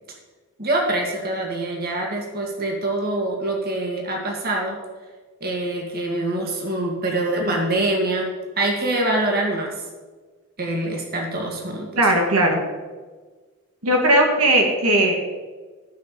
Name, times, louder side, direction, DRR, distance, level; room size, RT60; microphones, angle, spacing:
voice 1, 0.6-4.8 5.4-8.3 8.6-9.7 10.6-11.9, right 2 dB, 45° right, 0 dB, 2.2 m, -24 dB
voice 2, 7.4-7.8 11.9-12.6 13.8-15.2, right 1 dB, 85° right, 2 dB, 2.1 m, -18 dB
14.5 x 6.0 x 7.0 m, 1.4 s
head